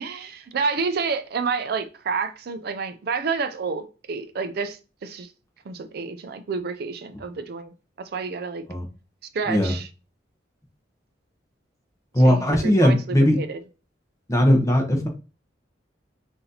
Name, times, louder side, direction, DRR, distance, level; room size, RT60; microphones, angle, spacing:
voice 1, 0.0-5.3 5.7-8.6 9.3-9.9 12.2-13.6, right 5 dB, 55° right, 0.4 m, -29 dB
voice 2, 12.1-13.4 14.3-15.1, equal, 20° left, 0.8 m, -18 dB
5.7 x 2.6 x 2.8 m
head